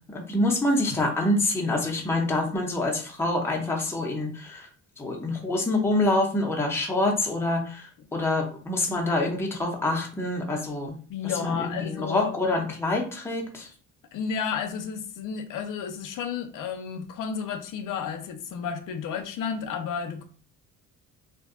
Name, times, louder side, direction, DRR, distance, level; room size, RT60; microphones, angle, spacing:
voice 1, 0.1-4.7 5.0-10.9 11.4-13.7, left 2 dB, 5° left, 0.6 m, -26 dB
voice 2, 11.1-12.3 14.1-20.2, left 6 dB, 70° left, 0.6 m, -32 dB
2.5 x 2.2 x 3.6 m
cardioid pair, 130°, 33 cm